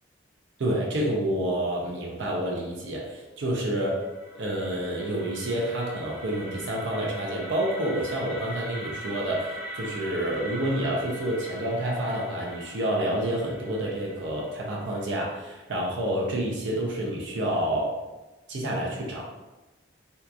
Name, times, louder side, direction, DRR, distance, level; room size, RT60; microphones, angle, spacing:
voice 1, 0.6-4.0 4.4-17.9 18.5-19.2, right 1 dB, 75° right, -3 dB, 0.5 m, -28 dB
sound 1, 3.6-15.6, equal, 15° right, 0.6 m, -42 dB
2.7 x 2.3 x 2.3 m, 1.1 s
head